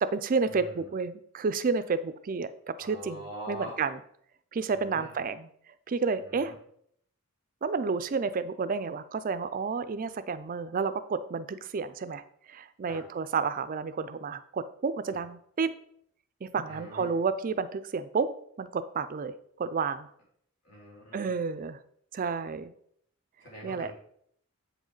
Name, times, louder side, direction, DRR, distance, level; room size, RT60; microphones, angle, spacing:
voice 1, 0.0-3.2 3.5-4.0 4.5-5.5 5.9-6.5 7.6-15.7 16.4-20.1 21.1-21.8 22.1-22.7 23.6-23.9, right 5 dB, 40° right, 13 dB, 0.4 m, -31 dB
voice 2, 2.8-3.7 4.7-5.1 6.2-6.5 12.9-13.0 16.7-17.1 20.6-21.3 23.4-23.9, equal, 85° left, -4 dB, 3.2 m, -43 dB
7.7 x 5.1 x 3.9 m, 0.68 s
head